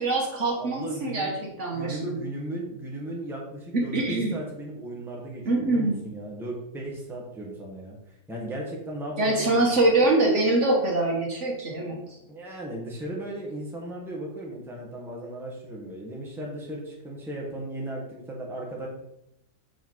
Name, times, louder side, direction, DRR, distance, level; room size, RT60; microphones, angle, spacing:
voice 1, 0.0-1.3 1.6-2.2 3.9-4.3 5.5-6.0 9.2-12.0, right 2 dB, 50° right, -1 dB, 1.6 m, -24 dB
voice 2, 0.6-1.4 1.7-8.0 8.3-9.9 12.0-18.9, right 1 dB, ahead, -3 dB, 1.3 m, -36 dB
6.2 x 5.0 x 4.7 m, 0.82 s
omnidirectional pair, 1.7 m